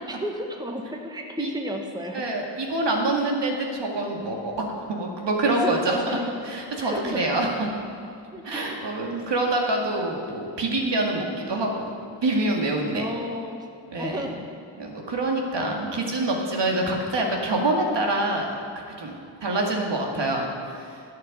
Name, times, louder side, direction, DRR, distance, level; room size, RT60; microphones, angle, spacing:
voice 1, 0.0-2.2 5.4-6.2 6.8-7.5 8.3-8.7 12.9-13.7 14.0-14.3, equal, 10° right, 2 dB, 1.3 m, -32 dB
voice 2, 2.1-6.0 6.5-7.5 8.4-11.9 12.2-13.1 13.9-14.2 14.8-18.6 19.0-19.1 19.4-20.5 20.9-21.0, right 2 dB, 60° right, 0 dB, 2.1 m, -26 dB
11.0 x 6.8 x 7.8 m, 2.5 s
supercardioid pair, 45°, 48 cm